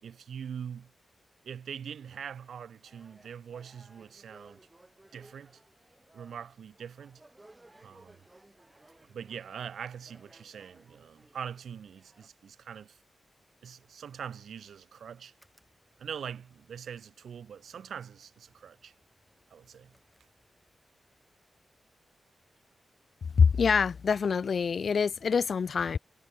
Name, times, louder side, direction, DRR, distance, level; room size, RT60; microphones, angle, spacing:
voice 1, 0.0-0.9 1.4-4.7 5.1-5.6 6.1-7.2 7.8-8.2 9.1-13.0 13.6-15.3 16.0-18.9 19.5-20.0, right 8 dB, 85° right, 1.5 m, -43 dB
sound 1, 2.8-12.3, right 2 dB, 20° right, 1.7 m, -59 dB
sound 2, 15.3-20.9, left 1 dB, 5° left, 6.3 m, -71 dB
voice 2, 23.4-26.0, left 6 dB, 65° left, 0.4 m, -25 dB
cardioid pair, 75°, 0 cm